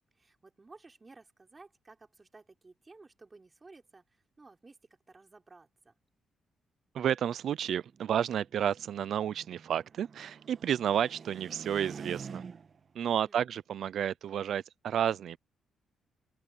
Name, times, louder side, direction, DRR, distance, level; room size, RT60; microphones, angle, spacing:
voice 1, 0.1-4.8 5.1-5.9 13.0-13.5, right 3 dB, 25° right, 4.8 m, -56 dB
voice 2, 6.9-12.4 12.9-15.4, right 9 dB, 70° right, 0.6 m, -31 dB
sound 1, 7.4-12.9, right 6 dB, 45° right, 1.4 m, -47 dB
open air
cardioid pair, 105°, 0 cm